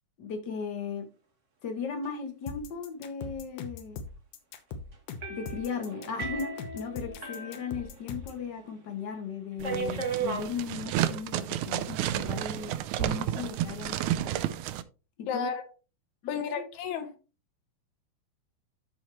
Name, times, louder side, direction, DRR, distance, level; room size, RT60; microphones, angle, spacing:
voice 1, 0.2-1.1 1.6-4.0 5.3-14.5 15.2-15.5 16.2-16.6, left 6 dB, 55° left, 1.2 m, -37 dB
sound 1, 2.5-8.4, left 4 dB, 90° left, 2.6 m, -41 dB
sound 2, 5.2-8.4 8.7-8.8 9.6-10.5 11.4-11.9, right 4 dB, 55° right, 0.8 m, -36 dB
sound 3, 9.6-14.8, right 12 dB, 80° right, 1.9 m, -31 dB
voice 2, 15.3-15.6 16.3-17.1, left 6 dB, 70° left, 2.3 m, -32 dB
13.0 x 4.3 x 3.1 m
omnidirectional pair, 3.6 m